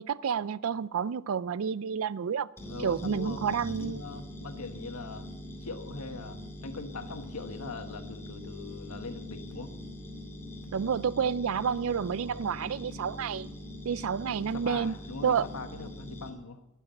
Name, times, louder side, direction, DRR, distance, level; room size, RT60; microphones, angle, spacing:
voice 1, 0.0-2.5 2.8-4.0 10.7-13.5 13.8-14.9 15.2-15.5, right 7 dB, 65° right, 0.4 m, -29 dB
voice 2, 2.6-5.3 5.6-9.7 12.2-12.6 14.4-16.6, left 3 dB, 85° left, 1.3 m, -41 dB
sound 1, 2.6-16.3, left 1 dB, 10° left, 2.2 m, -43 dB
20.5 x 7.4 x 5.3 m
head